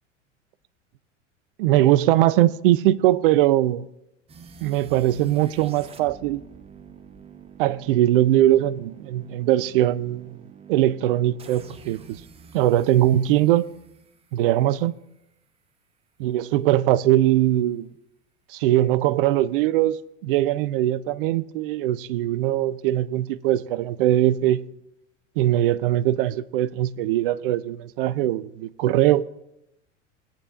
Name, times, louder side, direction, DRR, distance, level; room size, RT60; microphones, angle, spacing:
voice 1, 1.6-3.9 4.6-6.4 7.6-10.4 10.7-12.2 12.5-13.7 14.3-14.9 16.2-17.9 18.5-20.0 20.2-24.6 25.4-29.2, right 13 dB, 50° right, 0.5 m, -21 dB
sound 1, 4.3-15.2, right 6 dB, 15° right, 0.7 m, -47 dB
17.5 x 8.7 x 2.5 m
figure-of-eight pair, 80°, 36 cm